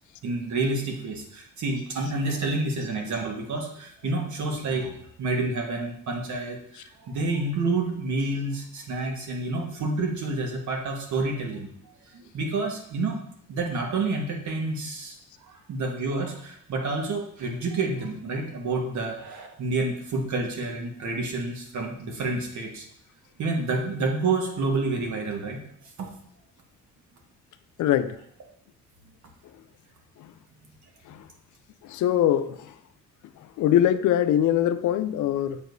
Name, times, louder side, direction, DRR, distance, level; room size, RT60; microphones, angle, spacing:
voice 1, 0.2-11.7 12.0-13.2 13.5-15.1 15.5-22.8 23.4-25.6 26.0-26.1, right 3 dB, 70° right, 1.4 m, -29 dB
voice 2, 27.8-28.2 31.9-32.6 33.6-35.6, left 11 dB, 75° left, 0.5 m, -22 dB
7.6 x 4.7 x 2.6 m
cardioid pair, 90°, 30 cm